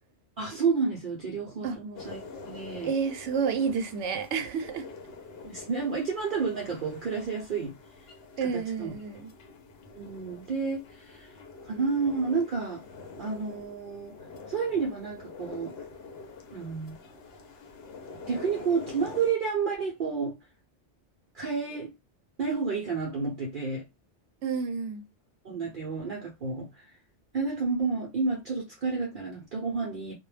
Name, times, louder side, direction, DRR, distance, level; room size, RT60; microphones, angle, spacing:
voice 1, 0.4-2.9 5.4-7.7 8.5-8.9 9.9-11.3 11.6-12.8 13.2-14.1 14.5-15.7 16.5-17.0 18.3-20.4 21.3-21.9 22.4-23.8 25.4-26.9 27.3-30.1, right 5 dB, 55° right, 0.7 m, -30 dB
sound 1, 2.0-19.3, left 4 dB, 65° left, 0.8 m, -46 dB
voice 2, 2.8-4.9 8.4-9.3 24.4-25.0, right 6 dB, 80° right, 0.9 m, -30 dB
2.2 x 2.0 x 3.1 m
omnidirectional pair, 1.2 m